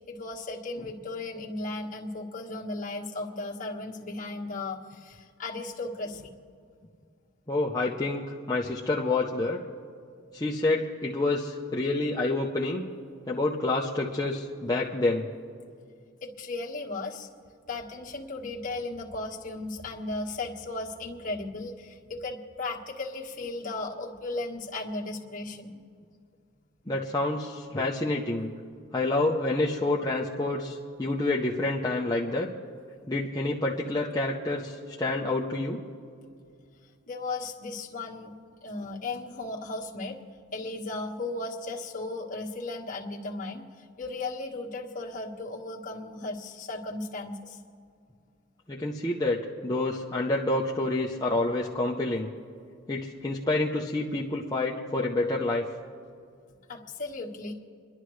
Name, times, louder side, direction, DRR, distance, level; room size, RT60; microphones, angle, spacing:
voice 1, 0.1-6.3 16.2-17.3 17.7-25.8 37.1-38.3 38.6-40.2 40.5-43.6 44.0-47.6 55.4-55.5 56.7-57.5, left 2 dB, 40° left, -3 dB, 1.6 m, -36 dB
voice 2, 7.5-9.6 10.3-12.9 13.3-15.2 26.9-28.5 28.9-32.5 33.1-35.8 48.7-52.3 52.9-55.6, left 2 dB, 20° left, -3 dB, 0.7 m, -28 dB
29.5 x 11.5 x 3.2 m, 2.3 s
head